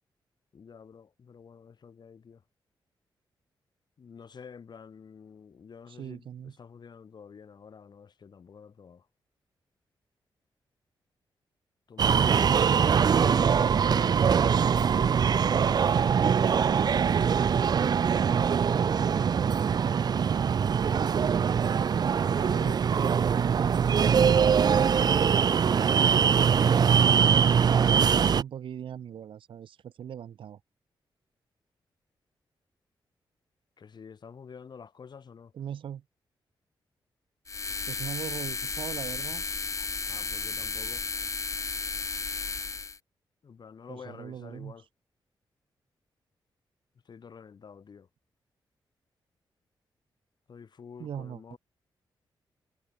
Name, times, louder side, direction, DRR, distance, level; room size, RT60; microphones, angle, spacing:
voice 1, 0.5-2.4 4.0-6.3 6.6-9.0 11.9-12.5 13.1-14.3 22.3-22.8 26.7-27.5 33.8-35.5 40.1-41.0 43.4-44.8 47.1-48.1 50.5-51.6, left 6 dB, 55° left, 7.7 m, -48 dB
voice 2, 5.9-6.6 25.1-25.4 27.9-30.6 35.5-36.0 37.9-39.4 43.9-44.9 51.0-51.6, right 9 dB, 85° right, 3.5 m, -40 dB
sound 1, 12.0-28.4, right 7 dB, 50° right, 0.5 m, -23 dB
sound 2, 37.5-43.0, left 4 dB, 40° left, 1.5 m, -33 dB
cardioid pair, 100°, 9 cm